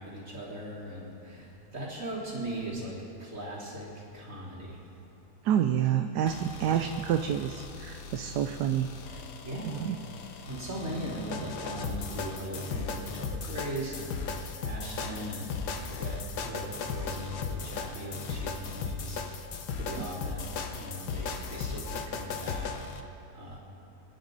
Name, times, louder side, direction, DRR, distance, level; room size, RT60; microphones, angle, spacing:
voice 1, 0.0-4.8 9.4-9.9 10.5-22.7 23.0-23.6, equal, 50° right, -6 dB, 3.8 m, -39 dB
voice 2, 5.4-9.2 9.6-10.0 20.0-20.1, right 9 dB, 80° right, 7 dB, 1.2 m, -28 dB
sound 1, 6.3-23.0, left 5 dB, 80° left, 1.5 m, -37 dB
26.5 x 11.0 x 3.9 m, 2.7 s
omnidirectional pair, 1.7 m